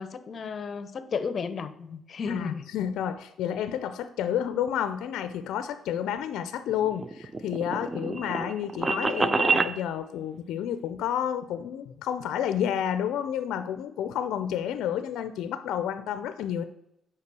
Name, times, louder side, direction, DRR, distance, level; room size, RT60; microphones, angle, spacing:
voice 1, 0.0-2.7, left 5 dB, 50° left, 12 dB, 0.7 m, -33 dB
voice 2, 2.3-16.6, left 9 dB, 85° left, 11 dB, 0.4 m, -30 dB
sound 1, 6.7-9.7, right 4 dB, 25° right, 0.4 m, -27 dB
5.7 x 4.8 x 6.0 m, 0.82 s
cardioid pair, 90°, 0 cm